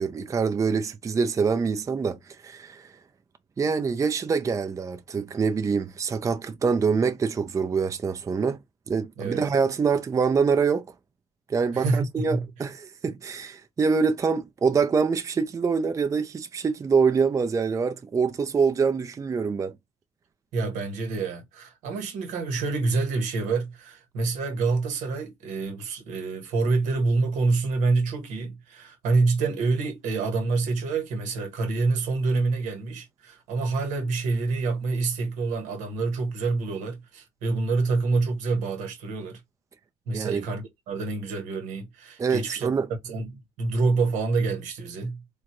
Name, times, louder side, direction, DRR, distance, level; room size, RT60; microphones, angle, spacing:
voice 1, 0.0-2.9 3.6-8.6 8.9-10.9 11.5-19.7 40.1-40.4 42.2-42.9, right 5 dB, 25° right, 0.4 m, -25 dB
voice 2, 11.7-12.4 20.5-39.4 40.1-42.7 43.0-45.2, right 3 dB, 85° right, 1.0 m, -27 dB
3.7 x 2.0 x 2.9 m
cardioid pair, 95°, 12 cm